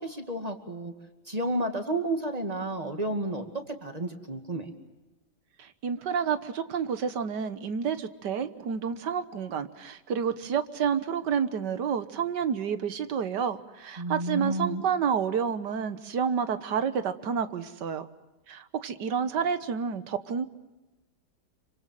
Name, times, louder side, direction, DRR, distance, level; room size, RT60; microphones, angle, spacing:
voice 1, 0.0-0.9 1.3-4.7 14.0-14.8, right 1 dB, 20° right, 5 dB, 2.3 m, -31 dB
voice 2, 5.6-18.1 18.5-20.5, right 7 dB, 85° right, 12 dB, 1.8 m, -29 dB
27.0 x 25.0 x 7.6 m, 1.1 s
omnidirectional pair, 1.8 m